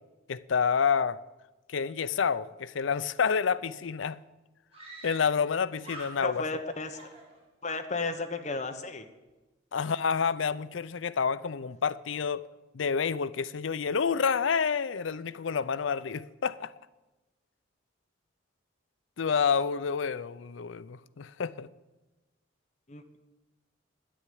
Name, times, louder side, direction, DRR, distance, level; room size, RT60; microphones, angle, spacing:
voice 1, 0.3-1.2 1.7-4.2 5.0-6.4 9.7-12.4 12.7-16.7 19.2-21.7, left 6 dB, 80° left, 0.5 m, -28 dB
Screaming, 3.9-4.0 4.7-5.5 5.8-6.6 6.9-7.8, right 2 dB, 30° right, 3.1 m, -47 dB
voice 2, 6.2-7.1 7.6-9.1 22.9-23.2, left 3 dB, 35° left, 1.2 m, -34 dB
10.0 x 9.7 x 9.3 m
head